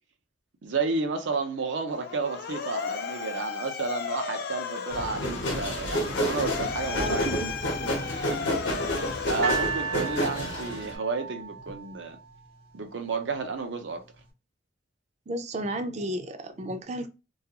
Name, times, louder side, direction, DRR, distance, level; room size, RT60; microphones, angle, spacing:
voice 1, 0.6-7.3 8.1-8.5 8.9-12.2 12.7-14.0, right 4 dB, 90° right, 0.6 m, -32 dB
Motor vehicle (road) / Siren, 1.9-10.5, left 5 dB, 60° left, 0.4 m, -35 dB
sound 1, 4.9-11.0, equal, 85° left, 0.8 m, -30 dB
voice 2, 6.9-7.6 7.8-7.9 15.3-17.1, right 1 dB, 40° right, 0.4 m, -33 dB
sound 2, 9.4-12.6 13.4-13.5, right 5 dB, 55° right, 0.9 m, -34 dB
2.4 x 2.3 x 2.8 m
head